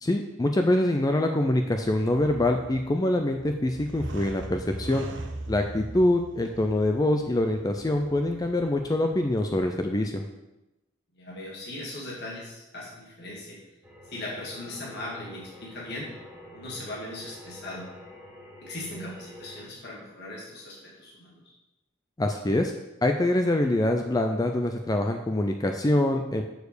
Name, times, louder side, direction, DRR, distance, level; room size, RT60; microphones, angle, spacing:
voice 1, 0.0-5.1 5.5-10.2 22.2-22.7 23.0-26.4, left 1 dB, 20° left, 4 dB, 0.4 m, -25 dB
sound 1, 1.5-10.0, right 2 dB, 65° right, 0.8 m, -41 dB
voice 2, 11.1-13.6 14.1-16.1 16.5-17.9 18.6-21.4, left 1 dB, 55° left, -5 dB, 1.9 m, -39 dB
sound 2, 13.8-19.6, left 1 dB, 10° right, 1.7 m, -47 dB
6.6 x 4.7 x 6.7 m, 0.99 s
head